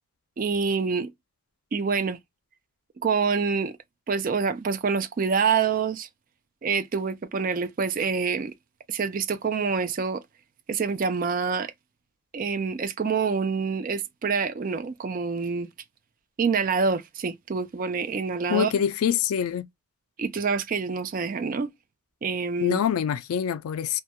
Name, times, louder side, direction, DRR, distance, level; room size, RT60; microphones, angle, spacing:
voice 1, 0.4-1.1 1.7-2.2 3.0-3.8 4.1-6.1 6.6-8.5 8.9-10.2 10.7-11.7 12.3-15.7 16.4-18.7 20.2-21.7 22.2-22.8, right 5 dB, 40° right, 0.3 m, -26 dB
voice 2, 18.5-19.7 22.6-24.0, left 8 dB, 85° left, 0.4 m, -25 dB
2.1 x 2.1 x 2.7 m
head